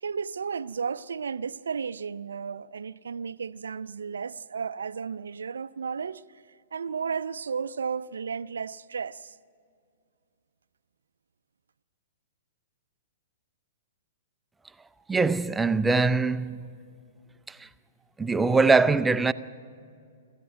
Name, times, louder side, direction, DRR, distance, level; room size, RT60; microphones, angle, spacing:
voice 1, 0.0-6.2 6.7-9.4, right 6 dB, 70° right, 0.5 m, -33 dB
voice 2, 15.1-16.6 17.5-17.7 18.2-19.3, right 4 dB, 10° right, 0.5 m, -22 dB
26.5 x 14.0 x 9.4 m
figure-of-eight pair, 110°, 0 cm